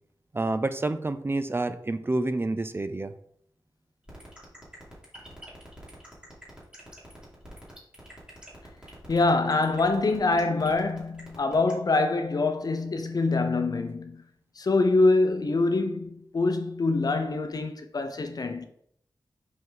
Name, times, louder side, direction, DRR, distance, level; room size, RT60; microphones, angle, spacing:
voice 1, 0.3-3.1, right 2 dB, 30° right, 0.5 m, -28 dB
sound 1, 4.1-11.7, equal, 10° right, 2.4 m, -47 dB
voice 2, 9.1-14.2 14.6-18.7, left 3 dB, 55° left, 0.7 m, -25 dB
5.3 x 5.3 x 3.9 m
wide cardioid pair, 95°, 8 cm